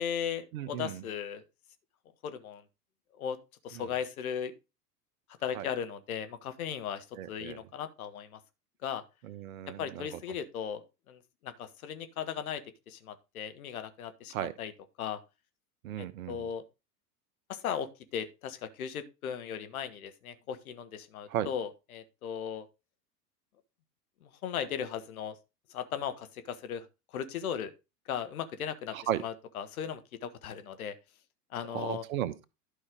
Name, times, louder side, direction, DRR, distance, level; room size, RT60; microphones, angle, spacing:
voice 1, 0.0-1.4 2.2-2.6 3.2-3.4 3.6-4.5 5.4-8.4 8.8-9.0 9.8-14.7 15.0-15.2 16.0-16.6 17.5-22.7 24.2-25.4 25.7-26.8 27.1-27.7 28.1-29.0 29.2-30.9 31.5-32.0, left 8 dB, 60° left, 1.5 m, -37 dB
voice 2, 0.5-1.0 3.7-3.8 5.5-5.7 7.2-7.6 9.2-10.2 14.3-14.5 15.8-16.5 21.3-21.5 28.9-29.2 31.7-32.4, right 11 dB, 60° right, 1.1 m, -35 dB
11.5 x 5.5 x 3.6 m
figure-of-eight pair, 90°, 47 cm